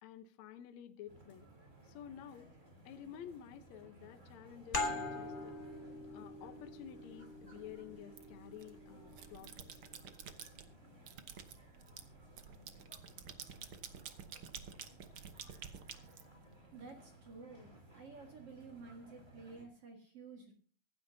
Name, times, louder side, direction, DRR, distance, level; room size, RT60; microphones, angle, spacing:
voice 1, 0.0-1.5 1.8-2.5 2.9-5.5 6.1-9.5, left 9 dB, 65° left, 8 dB, 2.0 m, -51 dB
sound 1, 1.1-19.6, right 1 dB, 20° right, 3.3 m, -60 dB
sound 2, 4.7-10.0, left 2 dB, 30° left, 0.9 m, -43 dB
sound 3, 8.1-8.7 9.1-10.7 11.1-16.8, right 8 dB, 85° right, 1.1 m, -50 dB
voice 2, 16.7-17.7 18.0-20.5, right 4 dB, 50° right, 2 dB, 2.5 m, -52 dB
24.5 x 11.5 x 2.8 m, 0.42 s
omnidirectional pair, 4.0 m